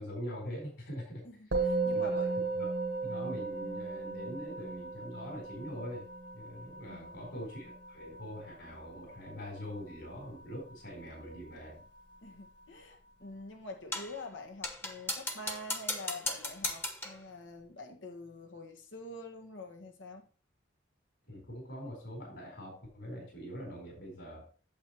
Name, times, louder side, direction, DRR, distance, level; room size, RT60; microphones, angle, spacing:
voice 1, 0.0-1.2 1.9-2.3 2.6-2.7 3.0-6.1 6.3-11.8 21.3-24.5, equal, 65° left, -1 dB, 4.4 m, -43 dB
voice 2, 1.2-2.3 6.9-7.3 12.2-20.3, left 2 dB, 90° left, 3 dB, 1.6 m, -46 dB
Musical instrument, 1.5-11.0, right 3 dB, 75° right, 1.6 m, -36 dB
sound 1, 13.9-14.2 14.6-17.2, left 1 dB, 15° left, 1.0 m, -37 dB
8.5 x 7.6 x 3.1 m, 0.36 s
head